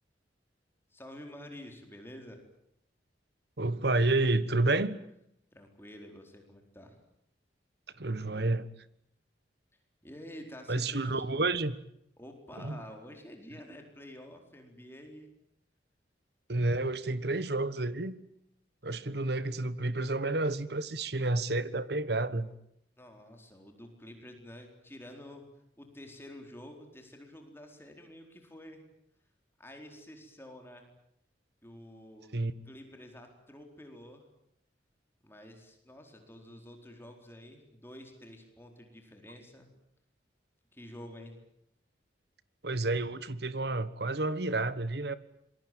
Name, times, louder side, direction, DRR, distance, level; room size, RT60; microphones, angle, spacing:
voice 1, 0.9-2.4 5.5-7.0 10.0-11.5 12.2-15.3 23.0-25.4 25.8-28.8 29.6-30.9 31.6-32.3 32.7-34.2 35.2-39.7 40.7-41.3, left 1 dB, 15° left, 4.3 m, -49 dB
voice 2, 3.6-5.0 8.0-8.7 10.7-11.7 12.6-12.8 16.5-18.2 18.8-22.5 32.3-32.5 42.6-45.1, right 2 dB, 60° right, 1.3 m, -30 dB
26.5 x 22.0 x 9.3 m
head